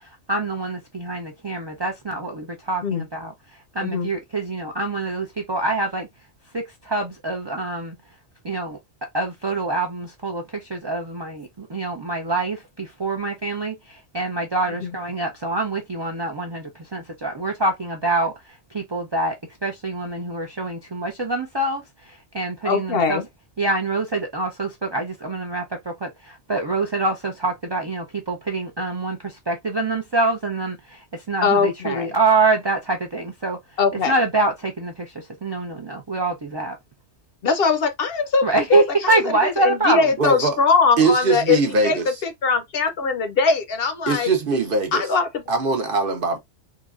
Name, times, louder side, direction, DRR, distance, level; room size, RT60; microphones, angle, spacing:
voice 1, 0.0-6.1 6.5-8.2 8.4-8.8 9.1-23.2 23.6-36.8 38.4-40.2, right 3 dB, 35° right, 0.4 m, -25 dB
voice 2, 22.7-23.2 31.4-32.1 33.8-34.1 37.4-38.4 38.7-39.2 39.6-41.6 41.8-42.0 42.2-44.3 44.9-45.3, left 5 dB, 60° left, 0.8 m, -21 dB
voice 3, 40.2-40.6 41.0-42.2 44.1-45.1 45.5-46.4, right 3 dB, 55° right, 0.8 m, -21 dB
3.9 x 2.2 x 2.4 m
omnidirectional pair, 1.2 m